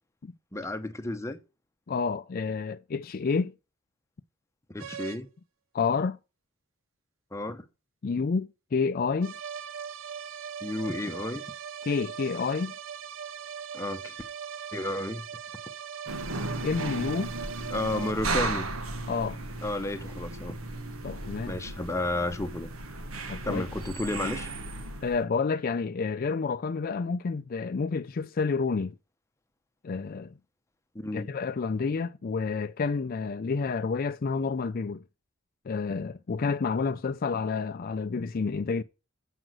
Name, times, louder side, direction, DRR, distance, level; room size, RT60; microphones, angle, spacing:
voice 1, 0.5-1.4 4.7-5.3 7.3-7.6 10.6-11.4 13.7-14.2 14.7-15.2 17.7-18.7 19.6-20.6 21.5-22.7 23.4-24.5 30.9-31.3, left 1 dB, 15° left, 0.7 m, -32 dB
voice 2, 1.9-3.5 5.7-6.2 8.0-9.3 11.8-12.7 16.6-17.3 19.1-19.4 21.0-21.6 23.3-23.6 25.0-29.0 29.8-30.3 31.1-35.0 35.7-38.8, left 4 dB, 45° left, 0.4 m, -29 dB
sound 1, 4.8-5.2 9.2-18.1, right 7 dB, 65° right, 0.6 m, -40 dB
sound 2, 16.1-25.2, right 2 dB, 85° right, 1.4 m, -35 dB
7.8 x 5.1 x 7.5 m
head